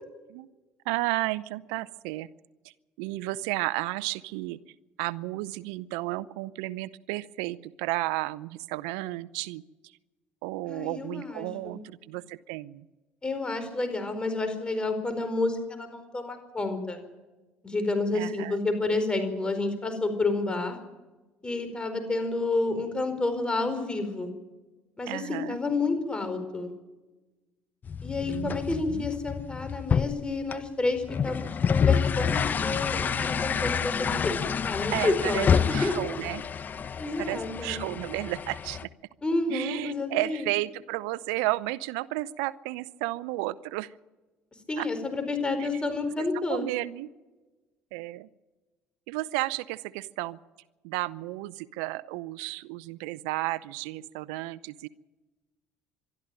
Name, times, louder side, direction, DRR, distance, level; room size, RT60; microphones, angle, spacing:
voice 1, 0.9-2.3 2.6-4.6 5.0-9.6 10.4-12.9 18.1-18.6 25.1-25.6 28.3-29.1 34.9-36.5 37.2-38.9 39.5-43.9 44.8-44.9 45.6-45.7 46.5-47.1 47.9-48.3 49.1-50.4 50.8-54.9, right 19 dB, 85° right, 18 dB, 0.5 m, -33 dB
voice 2, 10.7-11.8 13.2-17.0 17.6-20.8 21.4-24.3 25.0-26.7 28.0-35.9 37.0-37.8 39.2-40.5 44.7-46.6, left 3 dB, 20° left, 8 dB, 4.6 m, -30 dB
sound 1, 27.8-38.8, left 7 dB, 40° left, 0.8 m, -28 dB
22.5 x 13.0 x 8.9 m, 1.2 s
supercardioid pair, 75°, 5 cm